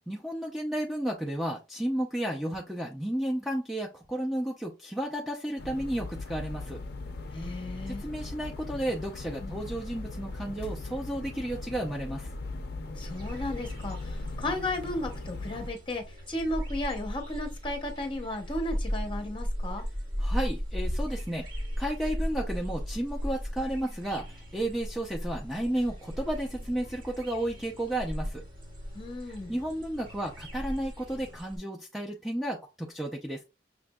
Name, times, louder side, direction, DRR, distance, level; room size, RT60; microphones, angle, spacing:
voice 1, 0.0-6.8 7.9-12.3 20.2-21.5 21.8-28.4 29.5-33.4, right 1 dB, ahead, 0.4 m, -32 dB
sound 1, 5.6-15.7, left 2 dB, 55° left, 0.5 m, -39 dB
voice 2, 7.3-8.0 9.4-9.6 13.0-19.8 28.9-29.5, left 1 dB, 25° left, 0.9 m, -34 dB
sound 2, 12.8-31.4, right 1 dB, 70° right, 2.2 m, -58 dB
sound 3, 13.0-31.6, equal, 50° right, 1.7 m, -37 dB
5.9 x 2.5 x 2.2 m
head